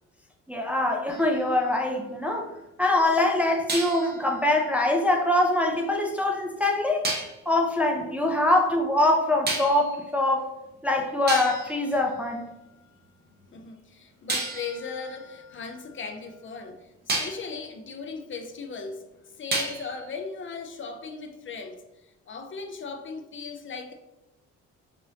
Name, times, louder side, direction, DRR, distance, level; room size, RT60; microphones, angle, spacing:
voice 1, 0.5-2.5 2.8-7.1 7.5-10.5 10.8-12.4, left 1 dB, 5° right, 0.5 m, -23 dB
sound 1, 1.1-2.5 3.7-5.8 7.0-7.4 9.5-10.0 10.8-10.9 11.3-12.9 14.3-16.5 17.1-17.5 19.5-20.1, right 2 dB, 35° right, 0.9 m, -34 dB
voice 2, 13.3-23.9, left 4 dB, 40° left, 0.6 m, -38 dB
4.9 x 2.6 x 2.8 m
cardioid pair, 90°, 30 cm